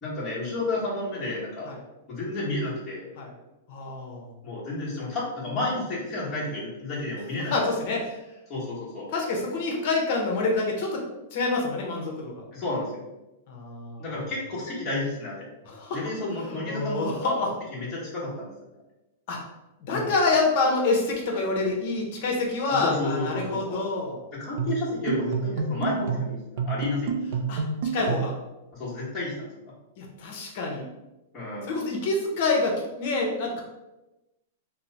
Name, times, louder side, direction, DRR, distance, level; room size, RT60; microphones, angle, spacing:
voice 1, 0.0-1.7 2.1-3.1 4.4-7.6 8.5-9.1 12.5-13.0 14.0-15.4 15.9-18.5 19.9-20.1 22.7-23.8 24.3-27.1 28.7-29.6 31.3-31.7, left 2 dB, 20° left, -9 dB, 1.2 m, -31 dB
voice 2, 3.7-4.3 7.5-8.2 9.1-11.0 11.3-12.4 13.5-14.1 15.7-16.0 16.4-17.5 19.3-19.4 19.8-24.2 27.5-27.6 27.9-28.3 30.0-30.8 31.6-33.6, left 3 dB, 45° left, 0 dB, 0.8 m, -27 dB
sound 1, 24.6-28.4, right 5 dB, 60° right, 0.4 m, -29 dB
3.0 x 2.1 x 3.9 m, 1.0 s
supercardioid pair, 160°, 0 cm